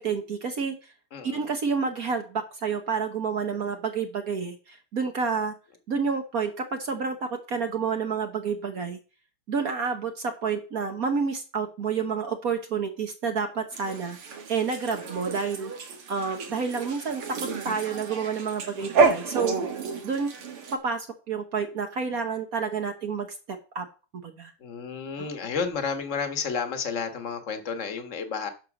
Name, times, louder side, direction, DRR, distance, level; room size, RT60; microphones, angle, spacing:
voice 1, 0.0-0.9 1.2-5.5 5.9-9.0 9.5-14.2 14.5-15.7 16.1-17.2 17.6-19.6 20.0-20.4 20.8-23.9 24.1-24.5 25.2-25.3, right 5 dB, 50° right, 1.3 m, -29 dB
voice 2, 1.1-1.4 19.0-19.1 24.6-28.5, left 5 dB, 40° left, 1.6 m, -31 dB
sound 1, 13.7-20.8, right 4 dB, 80° right, 2.5 m, -29 dB
11.0 x 4.6 x 6.4 m
omnidirectional pair, 2.4 m